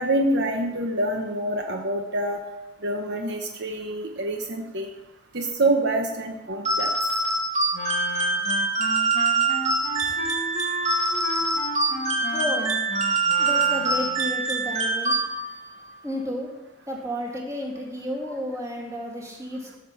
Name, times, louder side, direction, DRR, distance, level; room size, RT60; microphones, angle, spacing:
voice 1, 0.0-2.4 2.8-4.9 5.3-6.9, right 1 dB, 55° right, 3 dB, 1.1 m, -26 dB
sound 1, 6.6-15.7, right 3 dB, 35° right, 2.1 m, -24 dB
Wind instrument woodwind instrument, 7.7-14.4, left 2 dB, 40° left, 1.5 m, -34 dB
voice 2, 12.2-12.8 13.4-15.1 16.0-16.5 16.9-19.8, left 1 dB, 15° right, -2 dB, 2.7 m, -32 dB
15.0 x 6.0 x 7.1 m, 1.2 s
head